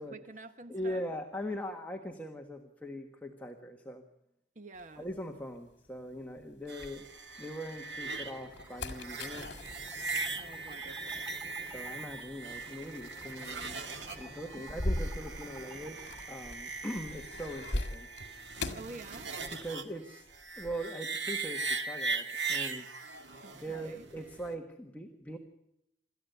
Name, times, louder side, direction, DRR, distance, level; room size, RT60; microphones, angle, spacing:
voice 1, 0.0-1.0 4.5-5.1 10.3-11.3 14.5-14.6 18.7-19.4 23.4-24.0, right 2 dB, 45° right, 9 dB, 1.1 m, -48 dB
voice 2, 0.7-4.0 5.0-7.1 7.4-9.5 11.6-13.8 14.2-18.1 19.5-20.3 20.6-22.9 23.5-25.4, equal, 10° left, 3 dB, 1.5 m, -41 dB
sound 1, 4.8-7.6 8.0-19.8 20.0-20.8, left 1 dB, 70° left, 2.0 m, -42 dB
sound 2, 6.7-24.5, right 4 dB, 85° right, 1.8 m, -40 dB
sound 3, 8.2-16.2, equal, 10° right, 3.0 m, -53 dB
27.0 x 13.5 x 8.2 m, 0.82 s
head